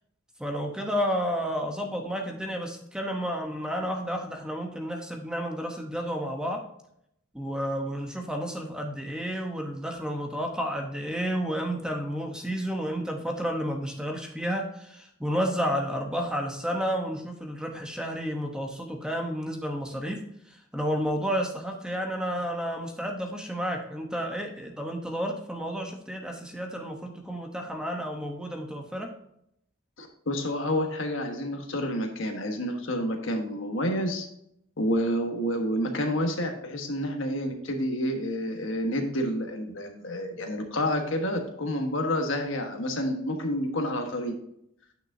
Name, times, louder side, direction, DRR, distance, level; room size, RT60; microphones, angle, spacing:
voice 1, 0.4-6.6 7.3-29.1, equal, 5° right, 2 dB, 0.9 m, -31 dB
voice 2, 30.0-34.3 34.8-44.3, equal, 65° left, 4 dB, 1.3 m, -29 dB
9.1 x 6.2 x 2.7 m, 0.74 s
head